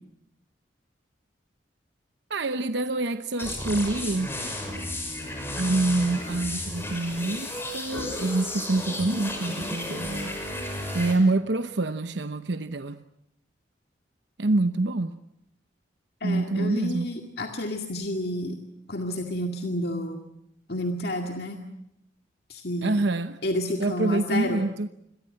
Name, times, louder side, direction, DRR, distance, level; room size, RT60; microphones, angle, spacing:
voice 1, 2.3-4.3 5.6-10.4 10.9-13.0 14.4-15.2 16.2-17.1 22.8-23.4 23.8-24.9, right 2 dB, 70° right, 0.9 m, -26 dB
sound 1, 3.4-11.1, left 1 dB, 15° left, 6.4 m, -33 dB
voice 2, 16.2-18.6 18.9-20.2 20.7-21.6 22.5-23.0 23.4-24.7, left 1 dB, 55° left, 2.2 m, -30 dB
28.5 x 22.5 x 7.7 m
head